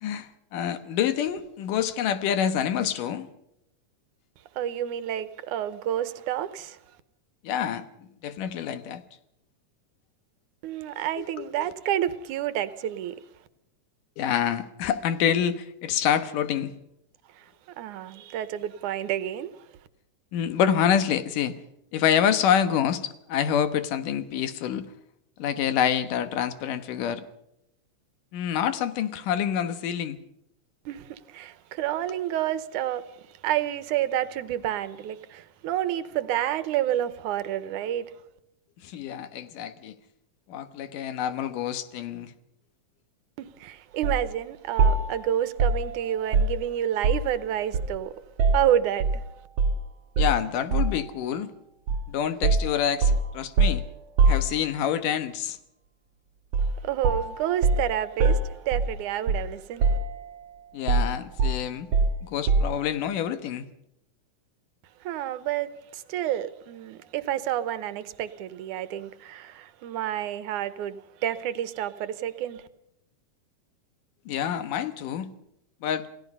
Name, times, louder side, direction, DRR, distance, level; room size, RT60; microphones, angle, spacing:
voice 1, 0.0-3.3 7.4-9.0 11.1-11.7 14.2-16.7 20.3-21.5 21.9-24.9 25.4-27.3 28.3-30.2 38.8-40.0 40.5-42.3 50.2-51.5 52.1-53.8 54.3-55.6 60.7-61.9 62.2-63.7 74.3-75.3 75.8-76.1, left 9 dB, 85° left, 2.8 m, -27 dB
voice 2, 4.6-6.8 10.6-13.2 17.4-17.5 17.8-19.5 30.9-33.1 33.4-38.1 43.4-48.1 48.5-49.3 56.6-59.9 65.0-72.7, right 11 dB, 80° right, 2.4 m, -29 dB
sound 1, 44.0-44.2 44.8-47.4 47.7-49.2 49.6-49.8 50.2-51.1 51.9-52.1 52.4-55.0 56.5-56.8 57.0-59.5 59.8-60.4 60.9-62.9, right 3 dB, 50° right, 3.0 m, -24 dB
28.5 x 17.5 x 5.5 m
omnidirectional pair, 3.6 m